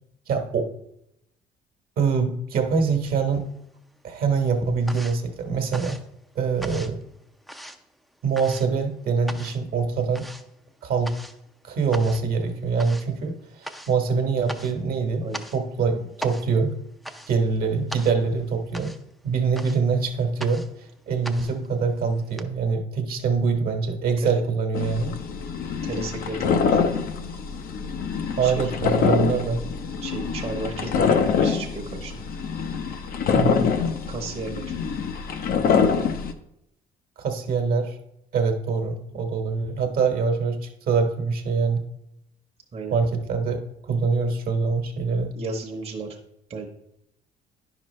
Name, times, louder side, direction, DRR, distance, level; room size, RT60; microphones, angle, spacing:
voice 1, 0.3-0.7 2.0-3.5 4.0-6.0 6.3-7.0 8.2-10.3 10.8-11.1 11.6-15.3 15.5-16.7 17.3-18.9 19.2-20.6 21.1-25.1 28.4-29.6 33.3-33.7 37.2-38.0 38.3-41.8 42.9-45.3, right 5 dB, 60° right, 5 dB, 1.2 m, -24 dB
sound 1, 3.2-3.9 4.2-22.4, equal, ahead, 0.5 m, -41 dB
sound 2, 24.7-36.3, left 6 dB, 60° left, 0.7 m, -25 dB
voice 2, 25.8-26.8 28.4-28.6 30.0-32.1 34.1-34.7 42.7-43.0 45.3-46.2 46.5-46.7, right 3 dB, 40° right, 0 dB, 1.0 m, -33 dB
9.8 x 5.9 x 3.1 m, 0.81 s
cardioid pair, 110°, 17 cm